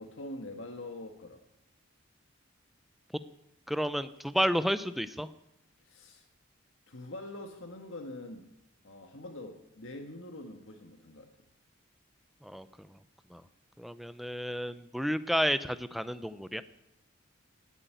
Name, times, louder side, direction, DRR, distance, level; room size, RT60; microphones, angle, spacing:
voice 1, 0.0-1.4 5.8-6.3 6.9-8.5 8.8-11.3, left 1 dB, 70° left, 3 dB, 1.5 m, -44 dB
voice 2, 3.7-5.3 12.4-12.7 13.3-13.4 13.8-16.6, equal, ahead, 13 dB, 0.5 m, -31 dB
17.0 x 8.3 x 9.1 m, 0.82 s
head